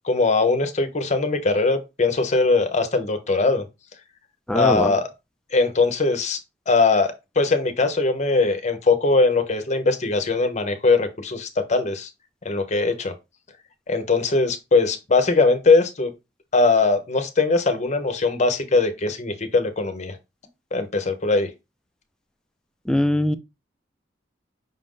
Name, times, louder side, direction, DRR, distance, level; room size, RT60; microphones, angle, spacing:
voice 1, 0.0-3.6 4.5-5.1 5.5-6.4 6.7-12.1 12.4-13.1 13.9-16.1 16.5-20.2 20.7-21.5, left 3 dB, 40° left, 0.7 m, -21 dB
voice 2, 4.5-4.9 22.9-23.4, left 1 dB, 5° left, 0.3 m, -21 dB
5.4 x 2.6 x 3.6 m
head